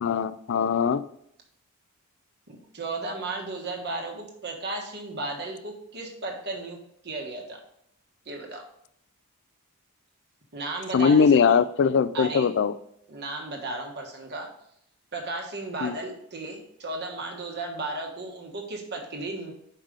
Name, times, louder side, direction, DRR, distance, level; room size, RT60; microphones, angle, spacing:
voice 1, 0.0-1.0 10.9-12.7 15.8-16.0, left 6 dB, 55° left, 15 dB, 0.3 m, -21 dB
voice 2, 2.5-6.8 7.0-7.6 8.2-8.6 10.5-11.5 12.1-12.5 13.1-14.5 15.1-19.5, right 2 dB, 50° right, 2 dB, 1.3 m, -34 dB
5.4 x 5.1 x 5.1 m, 0.73 s
head